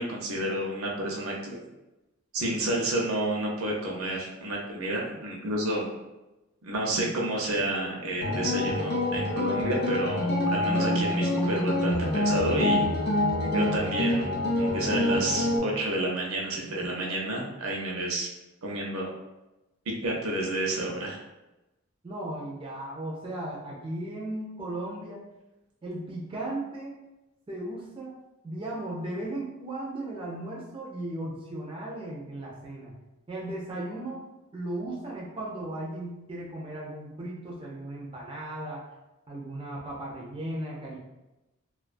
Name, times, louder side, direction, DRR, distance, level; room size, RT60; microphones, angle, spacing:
voice 1, 0.0-1.6 2.3-5.9 6.6-12.8 13.4-14.3 14.5-18.3 18.6-19.1 20.0-21.2, right 1 dB, 75° right, -1 dB, 0.6 m, -30 dB
sound 1, 8.2-15.6, left 1 dB, 45° left, 0.5 m, -26 dB
voice 2, 22.0-25.2 25.8-26.9 27.5-28.2 28.4-33.0 33.3-34.2 34.5-38.8 39.3-41.0, right 1 dB, 25° right, -4 dB, 0.4 m, -36 dB
2.2 x 2.2 x 2.4 m, 0.99 s
head